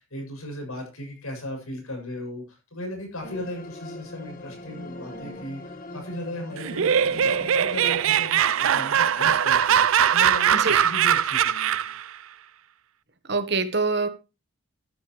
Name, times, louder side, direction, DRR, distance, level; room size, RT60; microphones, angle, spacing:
voice 1, 0.0-11.9, left 1 dB, 85° left, 2 dB, 7.3 m, -37 dB
sound 1, 3.2-8.2, left 1 dB, 40° left, 1.6 m, -40 dB
Laughter, 6.6-12.0, right 9 dB, 70° right, 0.5 m, -21 dB
voice 2, 10.5-10.8 13.3-14.1, right 4 dB, 50° right, 10 dB, 1.4 m, -24 dB
13.0 x 10.5 x 3.2 m, 0.29 s
head